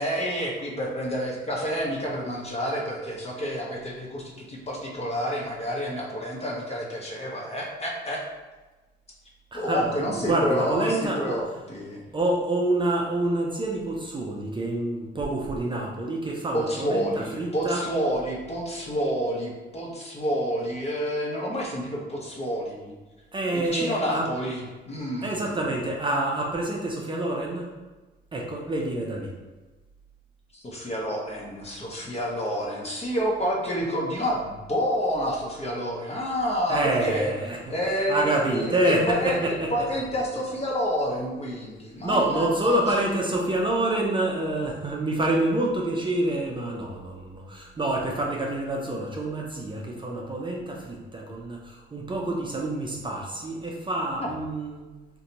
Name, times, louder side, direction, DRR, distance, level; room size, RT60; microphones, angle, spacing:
voice 1, 0.0-8.2 9.5-12.0 16.5-23.0 23.5-25.6 30.5-37.3 37.7-39.4 39.7-42.8 54.2-54.3, equal, 30° left, -2 dB, 0.8 m, -29 dB
voice 2, 9.5-11.4 12.1-17.8 23.3-24.3 25.2-27.7 28.3-29.3 36.7-37.7 38.1-39.7 42.0-54.8, right 1 dB, 25° right, -2 dB, 0.5 m, -27 dB
2.7 x 2.2 x 3.9 m, 1.2 s
cardioid pair, 90°, 20 cm